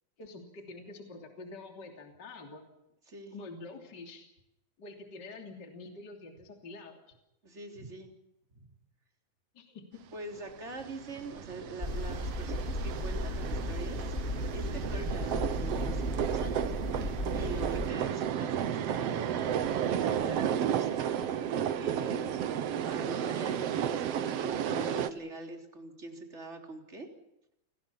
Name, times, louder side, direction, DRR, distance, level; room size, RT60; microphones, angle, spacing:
voice 1, 0.2-2.6 3.3-4.3 4.8-7.0 9.5-10.0, left 3 dB, 35° left, 3 dB, 3.5 m, -46 dB
voice 2, 7.4-8.1 10.1-14.1 14.5-17.1 17.3-21.1 21.5-22.3 22.9-27.1, right 2 dB, 20° right, 3 dB, 3.7 m, -43 dB
sound 1, 10.7-25.1, right 9 dB, 65° right, 2.0 m, -33 dB
sound 2, 11.8-17.9, left 1 dB, 20° left, 2.3 m, -35 dB
29.0 x 21.0 x 5.8 m, 0.85 s
omnidirectional pair, 3.4 m